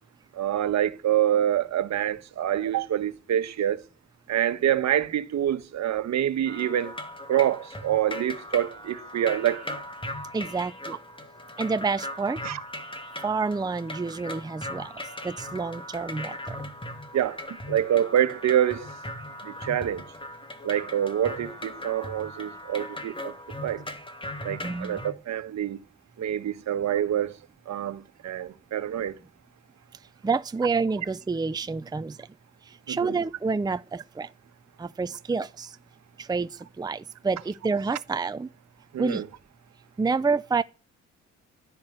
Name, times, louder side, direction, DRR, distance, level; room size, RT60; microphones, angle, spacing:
voice 1, 0.3-3.8 4.3-6.9 7.3-9.8 12.4-12.6 17.1-18.9 19.4-20.1 20.6-23.3 23.6-23.8 24.4-25.8 26.2-27.4 27.7-29.1 32.9-33.2 38.9-39.2, right 11 dB, 65° right, 1.5 m, -26 dB
sound 1, 6.5-25.1, left 1 dB, 15° left, 2.4 m, -39 dB
voice 2, 10.3-11.0 11.6-12.4 13.2-14.9 15.2-16.6 24.6-25.0 30.2-32.3 32.6-34.3 34.8-35.8 36.2-38.5 39.0-39.2 40.0-40.6, right 4 dB, 15° right, 0.6 m, -28 dB
12.5 x 10.5 x 8.0 m
cardioid pair, 90°, 30 cm